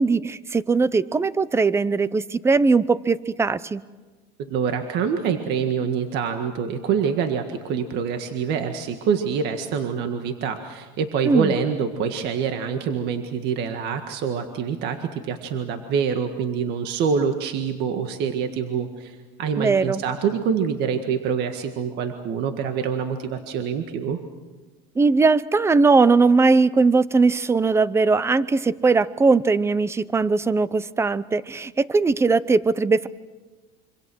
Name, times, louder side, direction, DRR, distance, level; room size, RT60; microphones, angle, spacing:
voice 1, 0.0-3.8 11.3-11.5 19.6-20.0 25.0-33.1, right 4 dB, 15° right, 18 dB, 0.7 m, -19 dB
voice 2, 4.5-24.2, right 6 dB, 55° right, 6 dB, 1.8 m, -26 dB
26.5 x 25.5 x 6.4 m, 1.3 s
supercardioid pair, 135°, 20 cm